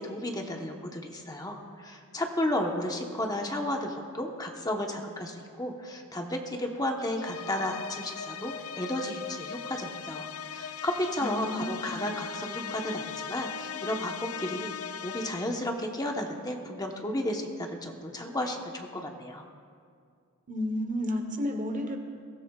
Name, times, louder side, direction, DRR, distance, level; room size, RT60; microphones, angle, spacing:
voice 1, 0.0-19.4, left 1 dB, 20° left, 2 dB, 1.1 m, -33 dB
sound 1, 7.2-15.7, left 7 dB, 80° left, 0.4 m, -39 dB
voice 2, 11.2-12.0 20.5-22.0, left 1 dB, 40° right, 5 dB, 1.1 m, -32 dB
22.0 x 16.5 x 2.4 m, 2.2 s
head